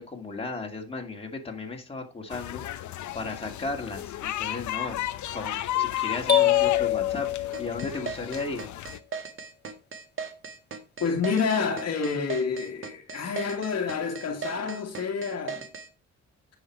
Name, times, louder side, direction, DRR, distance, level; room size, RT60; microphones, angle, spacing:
voice 1, 0.0-5.0 5.3-8.7, left 3 dB, 20° left, 2.4 m, -35 dB
sound 1, 2.3-9.0, left 13 dB, 75° left, 0.9 m, -33 dB
sound 2, 6.3-8.2, left 11 dB, 35° left, 1.6 m, -24 dB
sound 3, 7.5-15.9, right 5 dB, 45° right, 1.9 m, -37 dB
voice 2, 11.0-15.7, left 5 dB, 55° left, 1.9 m, -28 dB
9.8 x 5.9 x 4.7 m
cardioid pair, 90°, 30 cm